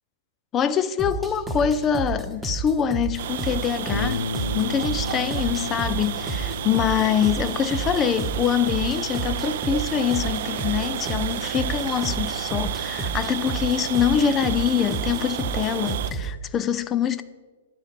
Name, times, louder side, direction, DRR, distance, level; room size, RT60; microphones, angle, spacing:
voice 1, 0.5-17.2, left 8 dB, 25° left, 0.4 m, -24 dB
sound 1, 1.0-16.3, right 3 dB, 5° right, 1.1 m, -31 dB
sound 2, 3.2-16.1, right 11 dB, 55° right, 0.5 m, -32 dB
sound 3, 3.9-10.2, left 4 dB, 65° left, 0.6 m, -35 dB
12.5 x 9.3 x 5.0 m
figure-of-eight pair, 110°, 0 cm